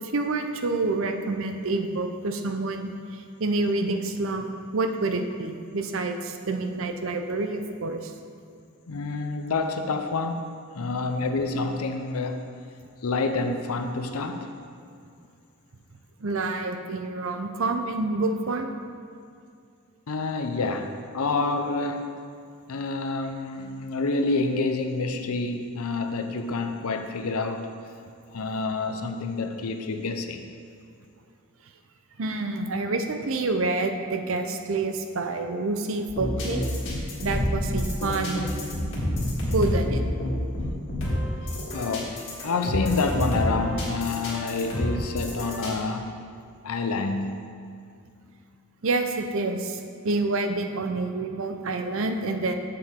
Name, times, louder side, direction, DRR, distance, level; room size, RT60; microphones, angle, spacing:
voice 1, 0.0-8.1 16.2-18.7 32.2-36.6 37.2-38.4 39.5-40.0 48.8-52.6, right 3 dB, 60° right, 5 dB, 0.6 m, -28 dB
voice 2, 8.9-12.5 13.0-14.5 20.1-22.1 22.7-27.7 28.3-30.5 41.0-41.1 41.4-42.1 42.4-46.1 46.6-47.4, left 3 dB, 75° left, 6 dB, 0.6 m, -28 dB
sound 1, 36.1-45.7, left 1 dB, 55° left, 1.8 m, -28 dB
7.9 x 6.7 x 3.7 m, 2.3 s
head